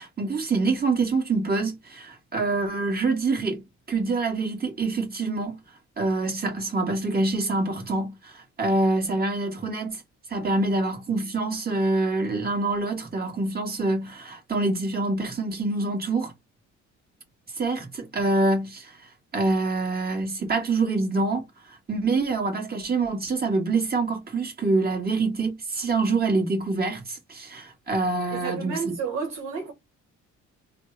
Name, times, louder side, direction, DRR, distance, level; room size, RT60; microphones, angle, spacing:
voice 1, 0.0-3.6 3.9-5.6 6.0-10.0 10.3-16.3 17.6-18.9 19.3-21.5 21.9-28.9, right 3 dB, 30° right, 1.8 m, -26 dB
voice 2, 28.3-29.7, right 5 dB, 70° right, 1.2 m, -31 dB
3.4 x 2.2 x 3.9 m
cardioid pair, 90°, 30 cm